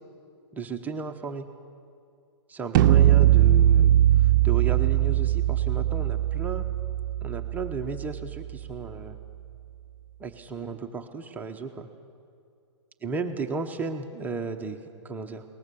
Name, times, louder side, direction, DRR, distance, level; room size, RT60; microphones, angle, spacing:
voice 1, 0.5-1.4 2.5-3.9 4.2-6.7 7.2-9.2 10.2-11.9 13.0-15.4, right 4 dB, 10° right, 5 dB, 0.8 m, -34 dB
sound 1, 2.7-8.7, right 12 dB, 45° right, 0.6 m, -21 dB
21.5 x 19.0 x 6.9 m, 2.4 s
hypercardioid pair, 135°, 15 cm